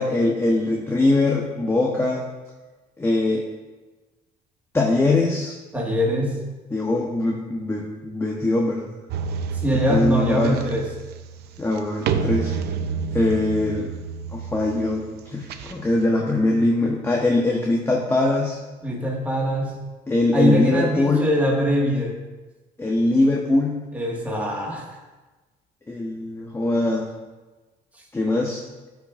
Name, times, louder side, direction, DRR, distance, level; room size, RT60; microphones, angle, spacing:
voice 1, 0.0-2.3 3.0-3.4 4.7-5.5 6.7-9.0 9.9-10.6 11.6-12.5 13.1-13.9 14.3-18.6 20.1-21.3 22.8-23.8 25.9-27.1 28.1-28.6, left 2 dB, 15° left, -2 dB, 1.0 m, -22 dB
voice 2, 5.7-6.4 9.6-10.9 18.8-19.8 20.3-22.2 23.9-24.8, equal, 10° right, -3 dB, 1.7 m, -22 dB
sound 1, 9.1-16.1, right 6 dB, 75° right, 0.6 m, -29 dB
12.5 x 5.9 x 2.5 m, 1.2 s
cardioid pair, 110°, 17 cm